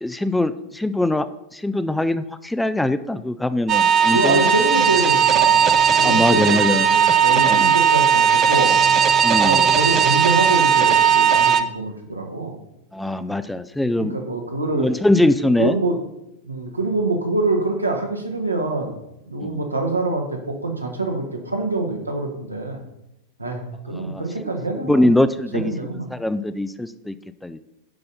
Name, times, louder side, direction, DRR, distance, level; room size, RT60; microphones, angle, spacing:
voice 1, 0.0-1.3 1.5-4.4 6.0-6.9 7.5-7.7 9.2-9.6 12.9-14.2 14.8-15.8 19.4-19.6 24.0-24.2 24.7-25.7 26.1-27.2 27.4-27.6, left 1 dB, 5° left, 12 dB, 0.4 m, -22 dB
sound 1, 3.7-11.6, right 8 dB, 30° right, 0.8 m, -17 dB
voice 2, 4.1-5.7 6.0-8.8 9.4-12.6 14.0-14.9 15.6-16.0 16.4-19.0 19.3-22.8 23.4-25.1 25.5-26.1, right 2 dB, 85° right, 2 dB, 1.6 m, -25 dB
10.5 x 5.4 x 5.6 m, 0.89 s
figure-of-eight pair, 90°, 0 cm